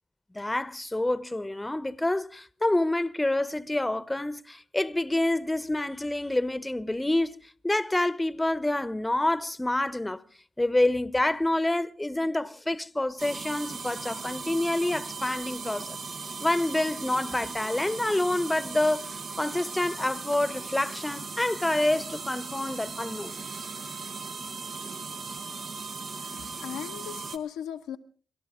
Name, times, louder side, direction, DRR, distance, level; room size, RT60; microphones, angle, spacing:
voice 1, 0.3-10.2 10.6-16.0 16.4-23.3, left 1 dB, 15° left, 0.9 m, -27 dB
sound 1, 13.2-27.4, right 4 dB, 65° right, 1.2 m, -38 dB
voice 2, 26.1-28.0, left 9 dB, 90° left, 0.9 m, -38 dB
29.5 x 12.5 x 3.7 m
supercardioid pair, 40°, 0 cm